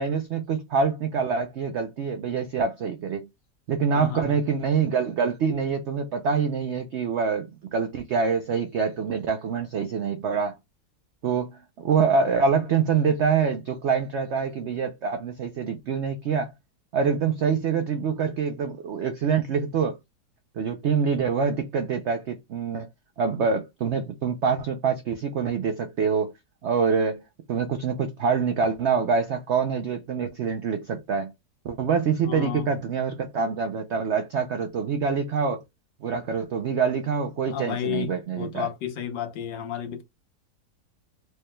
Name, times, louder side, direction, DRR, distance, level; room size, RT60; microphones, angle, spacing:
voice 1, 0.0-3.3 3.7-10.6 11.2-16.5 16.9-20.0 20.5-22.9 23.2-26.3 26.6-27.2 27.5-31.3 31.6-35.6 36.0-38.7, right 6 dB, 80° right, 0.6 m, -25 dB
voice 2, 3.9-4.4 32.2-32.7 37.5-38.1 38.3-40.0, left 9 dB, 90° left, 1.6 m, -32 dB
4.7 x 2.2 x 3.1 m
omnidirectional pair, 1.8 m